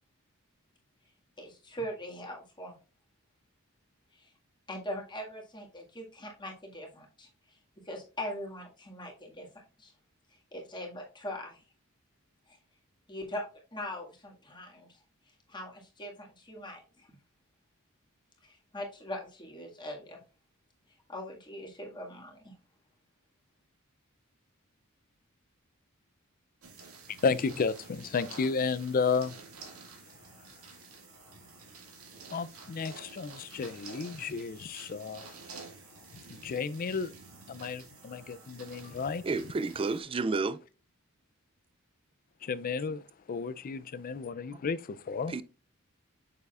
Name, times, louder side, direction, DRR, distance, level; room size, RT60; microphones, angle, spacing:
voice 1, 1.4-2.7 4.1-4.3 4.7-7.3 7.9-9.5 9.8-9.9 10.5-11.6 12.5-12.6 13.1-15.0 15.5-17.1 18.4-20.2 21.1-22.6, left 1 dB, 20° left, 1.8 m, -41 dB
sound 1, 26.6-40.0, right 4 dB, 90° right, 2.0 m, -50 dB
voice 2, 27.2-29.4 32.3-35.4 36.1-37.1 37.5-39.3 42.4-45.3, left 5 dB, 40° left, 0.4 m, -32 dB
voice 3, 39.2-40.6 44.5-44.6 45.3-45.4, right 3 dB, 25° right, 0.3 m, -31 dB
7.0 x 6.7 x 2.4 m
head